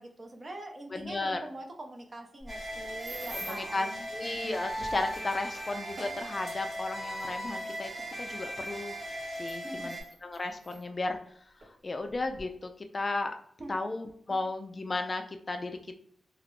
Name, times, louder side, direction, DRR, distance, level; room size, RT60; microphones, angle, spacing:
voice 1, 0.0-4.1 9.6-9.9 13.6-13.7 14.3-14.4, right 1 dB, 40° right, 2 dB, 0.5 m, -44 dB
voice 2, 0.9-1.4 3.4-7.9 8.2-8.9 9.3-11.2 11.8-13.4 13.7-16.0, left 2 dB, 35° left, 6 dB, 0.4 m, -34 dB
Box of nails, 2.4-3.7 4.5-7.8 8.6-8.7 9.3-10.8 11.6-11.7 12.1-12.4, right 1 dB, 75° right, 0.8 m, -47 dB
sound 1, 2.5-10.0, equal, 5° left, 1.0 m, -38 dB
2.3 x 2.0 x 2.9 m, 0.62 s
cardioid pair, 85°, 0 cm